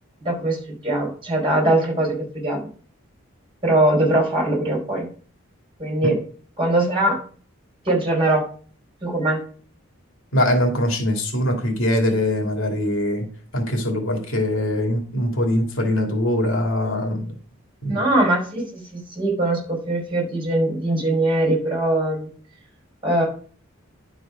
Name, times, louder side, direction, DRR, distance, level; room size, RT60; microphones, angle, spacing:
voice 1, 0.2-2.6 3.6-5.1 5.8-6.2 6.6-7.2 7.8-8.4 9.0-9.4 17.9-22.3 23.0-23.3, right 1 dB, 25° right, 0 dB, 4.6 m, -21 dB
voice 2, 10.3-13.3 13.5-17.3 17.8-18.0, left 1 dB, 70° left, 2 dB, 2.3 m, -22 dB
10.5 x 5.0 x 4.9 m, 0.42 s
head